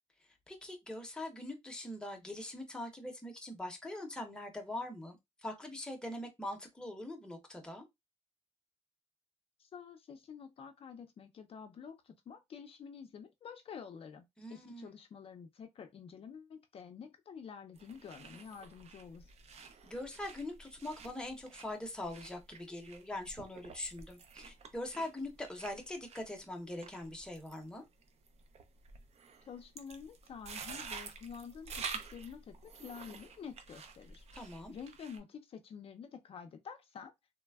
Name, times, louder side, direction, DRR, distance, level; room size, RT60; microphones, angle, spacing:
voice 1, 0.5-5.2 5.4-7.8 14.4-14.9 19.8-27.8 34.3-34.7, left 1 dB, 5° left, 0.7 m, -42 dB
voice 2, 9.6-14.2 14.5-19.3 29.5-34.2 34.7-37.1, left 6 dB, 55° left, 0.4 m, -49 dB
sound 1, 17.7-35.2, right 5 dB, 65° right, 0.5 m, -49 dB
3.2 x 2.1 x 2.2 m
wide cardioid pair, 125°, 12 cm